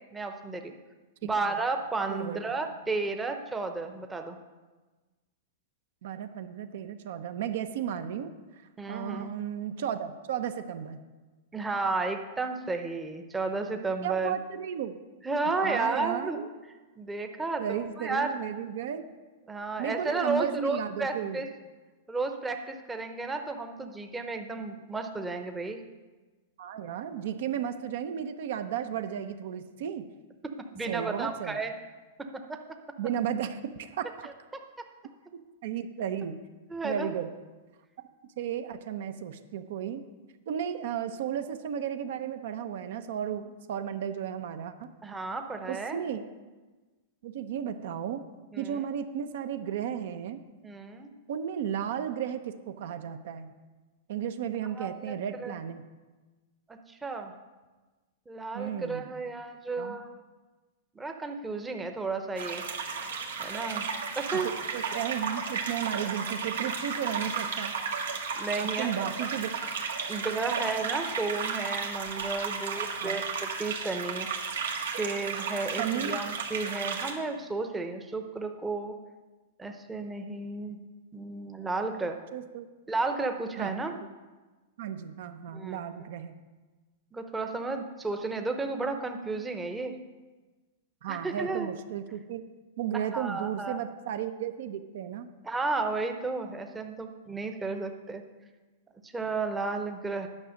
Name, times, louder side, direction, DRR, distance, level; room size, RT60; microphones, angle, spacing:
voice 1, 0.1-0.7 1.2-4.4 8.8-9.3 11.5-14.4 15.2-16.4 17.0-18.3 19.5-21.5 22.1-25.8 30.7-31.7 32.2-32.8 34.2-34.3 36.7-37.1 45.0-46.0 48.5-48.9 50.6-51.1 54.8-55.5 56.7-57.3 58.3-60.1 61.0-62.6 63.4-64.5 68.4-69.3 70.1-74.3 75.0-78.9 79.6-80.8 81.1-82.2 82.9-83.9 85.5-85.8 87.1-90.0 91.1-91.7 93.1-93.8 95.4-98.2 99.0-100.3, right 3 dB, 10° right, 5 dB, 0.8 m, -33 dB
voice 2, 2.1-2.5 6.0-8.3 8.9-11.0 14.0-15.0 15.6-16.5 17.6-19.0 19.8-21.4 26.6-30.0 30.9-31.6 33.0-34.3 35.6-36.4 36.8-37.3 38.4-40.0 40.5-44.9 45.7-46.3 47.2-48.2 48.6-50.4 51.3-53.5 54.1-55.8 58.5-59.1 59.8-60.0 64.3-67.7 68.6-69.5 73.0-73.2 75.7-76.2 82.3-82.7 83.6-84.1 84.8-86.3 91.0-92.4 92.8-95.3, right 9 dB, 65° right, 9 dB, 0.7 m, -34 dB
sound 1, 62.4-77.1, right 5 dB, 90° right, 1.6 m, -34 dB
9.8 x 5.9 x 6.4 m, 1.2 s
hypercardioid pair, 140°, 0 cm